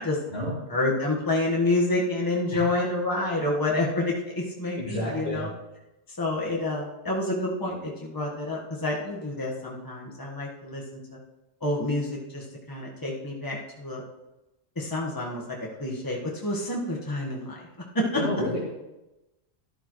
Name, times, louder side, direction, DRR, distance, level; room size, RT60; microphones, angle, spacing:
voice 1, 0.7-5.5 6.1-11.2 11.6-14.0 14.7-15.4 15.8-17.6 17.9-18.2, left 2 dB, 20° left, -3 dB, 1.5 m, -28 dB
voice 2, 4.8-5.4 18.1-18.6, left 1 dB, 60° left, -8 dB, 2.8 m, -30 dB
12.5 x 11.0 x 3.2 m, 1.0 s
omnidirectional pair, 1.2 m